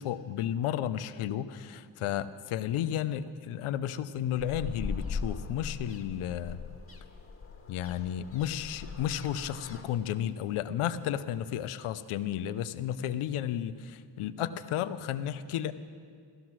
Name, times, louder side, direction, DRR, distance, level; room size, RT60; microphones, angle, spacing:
voice 1, 0.0-6.6 7.7-15.7, left 10 dB, 75° left, 12 dB, 0.8 m, -33 dB
sound 1, 4.4-9.8, left 4 dB, 25° left, 1.8 m, -40 dB
16.0 x 14.0 x 6.2 m, 2.1 s
supercardioid pair, 50°, 50 cm